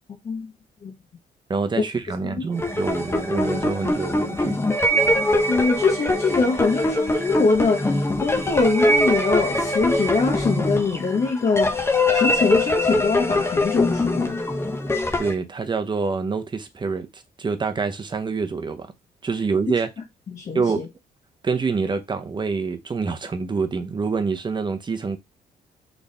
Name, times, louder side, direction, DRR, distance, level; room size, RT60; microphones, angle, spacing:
voice 1, 1.5-4.6 15.2-18.9 19.2-19.9 20.5-20.8 21.4-25.2, right 4 dB, 30° right, 0.7 m, -26 dB
sound 1, 2.5-15.3, left 1 dB, 15° left, 0.7 m, -22 dB
voice 2, 5.5-14.4 20.3-20.9, left 4 dB, 45° left, 0.9 m, -23 dB
3.4 x 2.5 x 4.1 m
cardioid pair, 80°, 16 cm